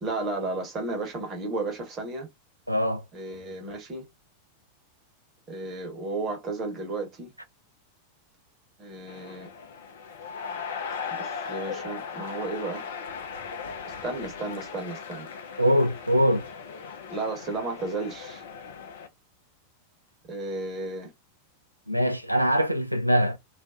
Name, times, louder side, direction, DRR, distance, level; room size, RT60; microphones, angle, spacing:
voice 1, 0.0-2.3 3.1-4.0 5.5-7.3 8.8-9.5 11.1-12.8 13.8-15.3 17.1-18.4 20.3-21.1, right 2 dB, 30° right, 1.0 m, -33 dB
voice 2, 2.7-3.0 15.6-16.5 21.9-23.4, equal, 90° right, 0.3 m, -23 dB
sound 1, 9.1-19.1, left 6 dB, 60° left, 0.5 m, -38 dB
2.4 x 2.2 x 2.4 m
figure-of-eight pair, 90°, 0 cm